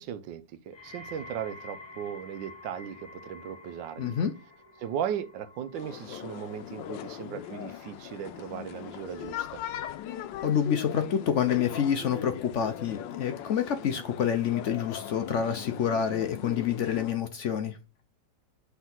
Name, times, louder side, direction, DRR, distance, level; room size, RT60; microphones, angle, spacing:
voice 1, 0.0-4.2 4.8-9.6, right 9 dB, 90° right, 1.3 m, -37 dB
sound 1, 0.7-11.8 12.2-12.7 13.4-13.5, left 2 dB, 40° left, 0.3 m, -51 dB
voice 2, 4.0-4.3 10.4-17.8, left 8 dB, 70° left, 0.7 m, -28 dB
sound 2, 5.7-17.1, left 11 dB, 85° left, 1.3 m, -40 dB
5.8 x 3.6 x 5.9 m
omnidirectional pair, 2.0 m